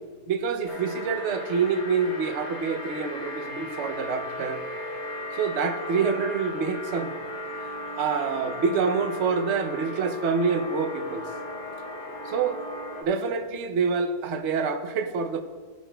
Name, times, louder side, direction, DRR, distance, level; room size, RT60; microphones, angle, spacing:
voice 1, 0.3-4.6 5.3-7.2 8.0-11.2 12.2-12.6 13.0-15.4, right 5 dB, 55° right, 6 dB, 0.9 m, -26 dB
sound 1, 0.7-13.0, left 1 dB, 75° left, 2.4 m, -36 dB
14.5 x 9.5 x 2.3 m, 1.5 s
omnidirectional pair, 1.7 m